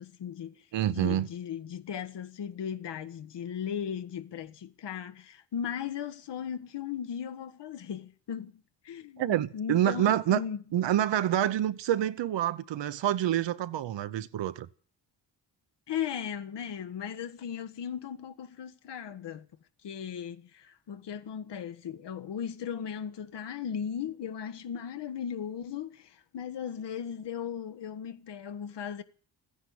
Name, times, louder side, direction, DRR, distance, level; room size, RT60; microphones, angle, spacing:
voice 1, 0.0-0.5 0.9-8.5 8.8-10.6 15.9-19.5 19.8-29.0, left 8 dB, 65° left, 1.4 m, -37 dB
voice 2, 0.7-1.3 9.2-10.4 10.7-14.7, right 11 dB, 70° right, 1.0 m, -27 dB
14.5 x 10.0 x 9.6 m
cardioid pair, 120°, 44 cm